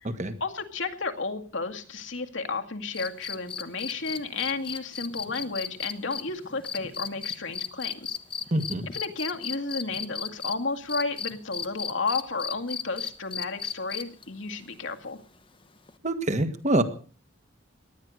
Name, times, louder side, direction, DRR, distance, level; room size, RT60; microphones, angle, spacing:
voice 1, 0.4-8.2 8.9-15.2, left 3 dB, 70° left, 5 dB, 2.1 m, -32 dB
sound 1, 2.9-10.5 10.9-14.2 15.9-16.0, left 7 dB, 25° left, 1.2 m, -34 dB
voice 2, 8.5-8.8 16.0-16.8, right 1 dB, 35° right, 9 dB, 1.7 m, -25 dB
19.0 x 12.0 x 6.4 m, 0.40 s
head